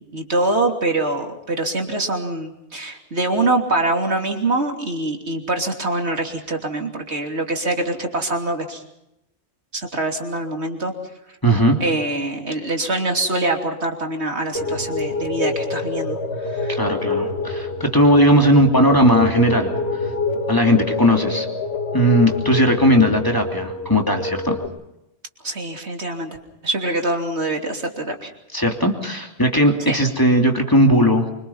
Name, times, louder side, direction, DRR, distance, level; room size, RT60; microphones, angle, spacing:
voice 1, 0.0-8.8 9.7-10.9 11.8-16.8 25.4-26.4 26.6-28.3 29.9-30.0, right 2 dB, 75° right, 3 dB, 3.4 m, -24 dB
voice 2, 11.4-11.8 16.7-19.7 20.5-21.5 21.9-24.6 28.5-31.3, equal, 20° left, 2 dB, 2.9 m, -17 dB
sound 1, 14.5-24.7, left 3 dB, 65° left, 2.7 m, -26 dB
25.5 x 25.0 x 5.7 m, 0.85 s
omnidirectional pair, 1.1 m